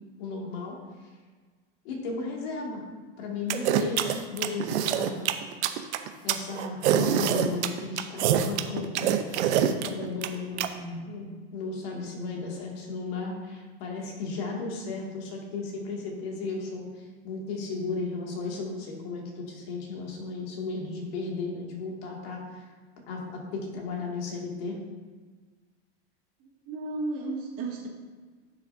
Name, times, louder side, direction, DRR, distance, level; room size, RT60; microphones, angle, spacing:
voice 1, 0.2-0.8 1.8-2.8 3.2-5.2 6.2-10.6 11.1-11.3 11.5-22.6 23.1-24.8, left 4 dB, 55° left, -1 dB, 2.3 m, -35 dB
sound 1, 3.5-10.7, right 10 dB, 75° right, 0.8 m, -25 dB
voice 2, 10.4-11.0 26.4-27.9, right 2 dB, 40° right, -3 dB, 2.2 m, -35 dB
10.5 x 6.5 x 2.7 m, 1.4 s
supercardioid pair, 135°, 34 cm